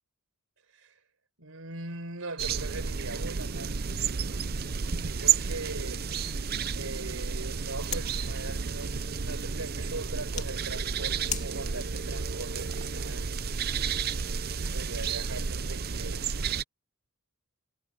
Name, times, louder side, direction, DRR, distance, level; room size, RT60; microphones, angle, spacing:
voice 1, 0.7-1.0 1.4-3.8 5.0-6.1 6.8-13.3 14.5-16.3, right 3 dB, 70° right, 4.6 m, -41 dB
sound 1, 2.4-16.6, right 6 dB, 45° right, 0.7 m, -31 dB
sound 2, 4.1-13.5, left 9 dB, 35° left, 2.7 m, -45 dB
head